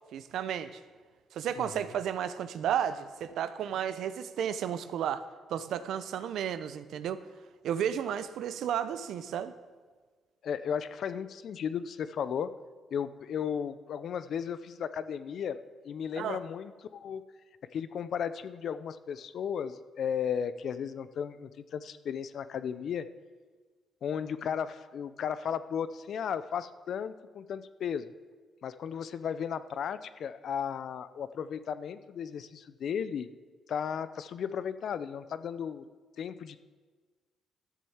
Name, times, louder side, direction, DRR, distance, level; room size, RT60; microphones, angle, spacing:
voice 1, 0.1-0.8 1.3-5.2 5.5-7.2 7.6-9.5 16.2-16.4, right 9 dB, 75° right, 12 dB, 0.7 m, -33 dB
voice 2, 1.6-1.9 10.4-12.5 12.9-15.6 15.8-17.2 17.7-23.1 24.0-28.1 28.6-33.3 33.7-35.8 36.2-36.6, left 8 dB, 65° left, 13 dB, 0.6 m, -35 dB
13.0 x 7.4 x 7.2 m, 1.4 s
cardioid pair, 90°, 0 cm